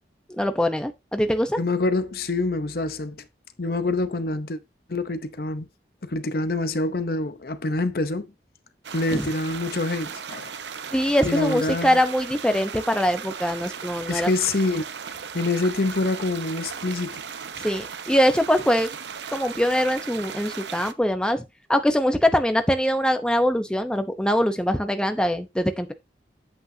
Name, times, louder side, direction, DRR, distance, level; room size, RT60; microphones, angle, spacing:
voice 1, 0.3-1.6 9.1-9.3 10.9-14.3 17.6-18.9 19.3-21.4 21.7-25.9, equal, 5° left, 0.8 m, -23 dB
voice 2, 1.6-3.2 3.6-4.6 4.9-5.7 6.0-8.3 8.9-10.5 11.2-12.0 14.1-14.8 15.3-17.2, left 2 dB, 55° left, 0.8 m, -26 dB
sound 1, 8.8-20.9, right 6 dB, 85° right, 0.8 m, -36 dB
8.5 x 8.0 x 2.8 m
head